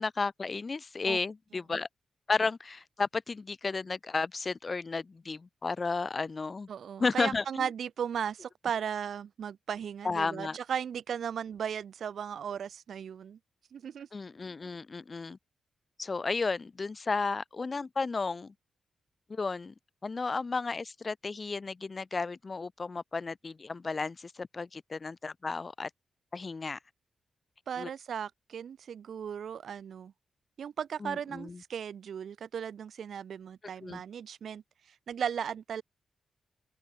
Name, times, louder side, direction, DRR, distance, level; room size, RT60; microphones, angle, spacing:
voice 1, 0.0-1.9 2.3-6.7 7.0-7.7 10.0-10.6 14.1-15.4 16.0-18.5 19.3-19.7 20.0-25.9 26.3-26.8 27.8-27.9 31.0-31.6 33.8-34.0, left 4 dB, 30° left, 1.7 m, -33 dB
voice 2, 6.7-13.4 13.7-14.1 27.7-30.1 30.6-35.8, right 8 dB, 65° right, 1.6 m, -36 dB
open air
wide cardioid pair, 135°, 0 cm